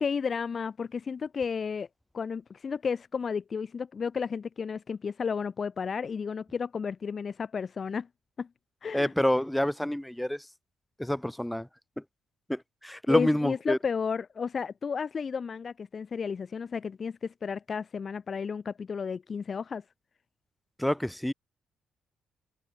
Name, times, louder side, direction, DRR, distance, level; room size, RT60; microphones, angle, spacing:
voice 1, 0.0-1.9 2.1-8.1 8.4-8.5 8.8-9.1 13.1-19.8, left 6 dB, 40° left, 0.5 m, -32 dB
voice 2, 8.9-10.4 11.0-11.7 12.5-13.8 20.8-21.3, left 1 dB, 5° left, 2.0 m, -27 dB
cardioid pair, 90°, 0 cm